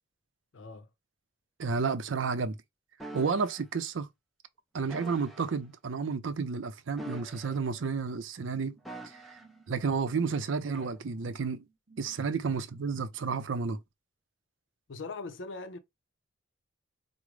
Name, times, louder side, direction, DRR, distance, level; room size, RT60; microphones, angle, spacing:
voice 1, 0.5-0.9 14.9-15.8, left 3 dB, 75° left, 0.5 m, -40 dB
voice 2, 1.6-2.5 3.1-4.1 4.7-8.8 9.7-11.6 12.0-13.8, right 5 dB, 80° right, 0.5 m, -31 dB
sound 1, 3.0-3.6 4.9-5.5 6.9-7.8 8.8-9.6 10.7-11.0, right 1 dB, ahead, 0.5 m, -45 dB
sound 2, 8.5-13.3, right 4 dB, 55° right, 0.9 m, -61 dB
4.9 x 2.0 x 3.1 m
head